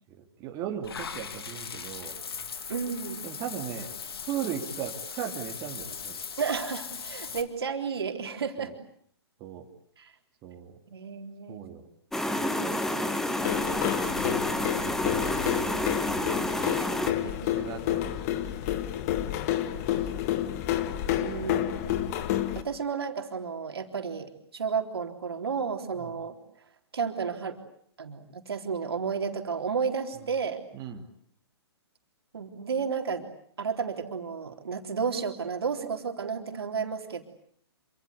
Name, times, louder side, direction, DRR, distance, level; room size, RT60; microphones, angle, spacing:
voice 1, 0.1-2.1 3.2-3.9 4.3-6.2 8.6-8.7 9.4-9.6 10.4-10.8 11.5-11.9 12.3-12.8 14.0-14.5 15.0-15.9 16.3-16.5 17.5-18.9 19.8-20.1 21.3-21.5 26.0-26.1 30.7-31.0, right 9 dB, 25° right, 2 dB, 2.9 m, -38 dB
Water / Bathtub (filling or washing), 0.8-7.4, left 6 dB, 60° left, 2.8 m, -39 dB
voice 2, 2.7-3.2 6.4-8.7 10.0-10.1 10.9-11.6 15.3-15.6 17.1-17.5 21.2-21.9 22.5-26.3 26.9-27.6 28.0-30.6 32.3-33.2 33.6-37.2, right 6 dB, 65° right, 5 dB, 3.8 m, -32 dB
sound 1, 12.1-17.1, left 1 dB, 5° left, 1.8 m, -29 dB
sound 2, 13.4-22.6, left 12 dB, 35° left, 2.0 m, -29 dB
27.0 x 26.0 x 8.3 m, 0.64 s
figure-of-eight pair, 125°, 14 cm